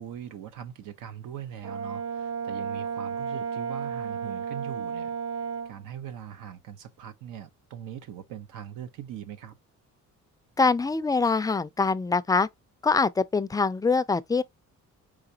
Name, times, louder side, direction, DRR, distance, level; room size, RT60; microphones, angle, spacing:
voice 1, 0.0-5.2 5.6-9.6, right 10 dB, 85° right, 0.8 m, -41 dB
Brass instrument, 1.6-5.7, right 6 dB, 55° right, 0.6 m, -33 dB
voice 2, 10.6-12.5 12.8-14.4, left 4 dB, 15° left, 0.3 m, -24 dB
4.9 x 3.5 x 2.7 m
cardioid pair, 100°, 30 cm